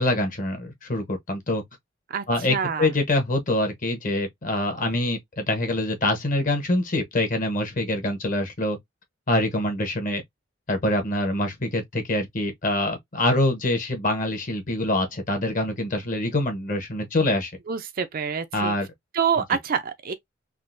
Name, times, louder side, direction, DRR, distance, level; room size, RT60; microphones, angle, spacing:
voice 1, 0.0-1.6 2.3-8.8 9.3-10.2 10.7-17.5 18.5-18.9, left 1 dB, 45° left, 1.0 m, -25 dB
voice 2, 2.1-2.9 17.7-18.7 19.1-20.1, right 7 dB, 50° right, 0.4 m, -27 dB
3.6 x 2.5 x 2.5 m
head